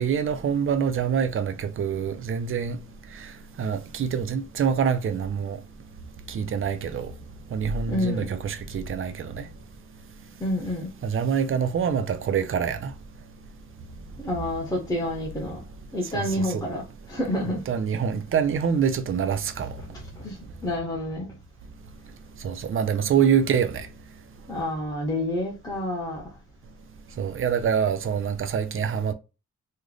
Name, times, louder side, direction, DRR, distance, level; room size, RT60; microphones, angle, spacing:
voice 1, 0.0-2.8 3.1-3.3 3.6-5.6 6.3-7.1 7.5-9.5 11.0-12.9 16.1-16.6 17.7-19.8 22.4-23.9 27.2-29.1, right 7 dB, 45° right, 0.5 m, -25 dB
voice 2, 7.9-8.3 10.4-10.9 14.2-15.6 15.9-17.6 20.2-21.3 24.5-26.2, left 1 dB, 10° left, 0.8 m, -29 dB
3.2 x 2.1 x 3.8 m
wide cardioid pair, 145°, 31 cm